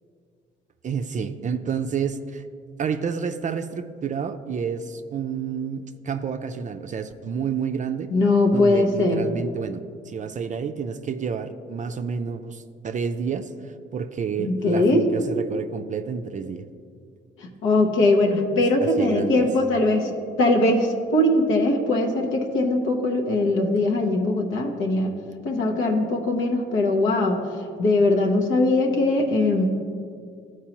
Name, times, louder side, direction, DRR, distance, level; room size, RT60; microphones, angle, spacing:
voice 1, 0.8-2.5 2.8-8.1 8.5-16.6 18.8-19.5, right 6 dB, 40° right, 8 dB, 0.4 m, -29 dB
voice 2, 8.1-9.3 14.4-15.1 17.4-20.1 20.4-27.4 27.8-29.7, left 2 dB, 85° left, 0 dB, 0.9 m, -21 dB
13.0 x 4.6 x 2.9 m, 2.3 s
cardioid pair, 90°, 20 cm